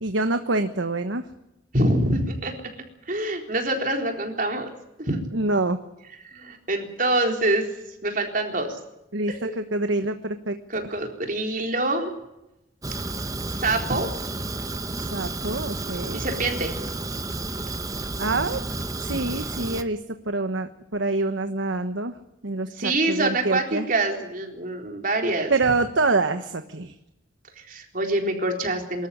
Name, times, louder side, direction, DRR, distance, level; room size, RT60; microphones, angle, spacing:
voice 1, 0.0-1.2 5.3-5.8 9.1-10.9 15.0-16.2 18.2-18.6 19.0-20.0 20.3-22.1 22.4-23.9 25.5-26.9, right 3 dB, 75° right, 8 dB, 1.2 m, -26 dB
voice 2, 1.7-2.5 3.1-4.7 5.0-5.2 6.2-7.7 8.0-8.8 9.3-9.4 10.7-12.1 13.5-14.1 16.1-16.7 22.8-25.5 27.6-29.1, right 2 dB, 45° right, 3 dB, 4.0 m, -25 dB
Fire, 12.8-19.8, right 2 dB, 20° right, 0.9 m, -31 dB
25.0 x 13.5 x 9.9 m, 0.91 s
head